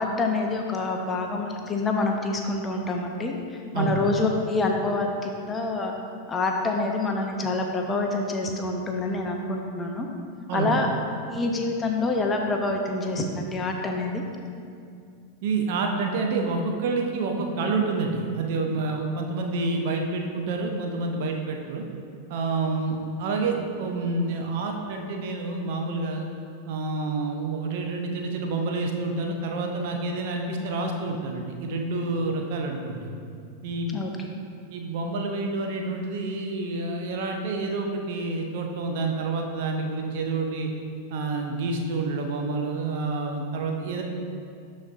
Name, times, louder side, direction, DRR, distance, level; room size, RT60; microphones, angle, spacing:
voice 1, 0.0-5.9 6.3-10.1 10.5-10.9 11.3-14.2 33.9-34.1, left 3 dB, 20° left, 2 dB, 0.7 m, -27 dB
voice 2, 10.5-10.8 15.4-21.8 22.3-26.3 26.7-33.1 33.6-34.0 34.7-40.7 41.1-44.0, right 3 dB, 50° right, 2 dB, 0.7 m, -28 dB
12.0 x 4.2 x 2.5 m, 2.4 s
figure-of-eight pair, 90°, 0 cm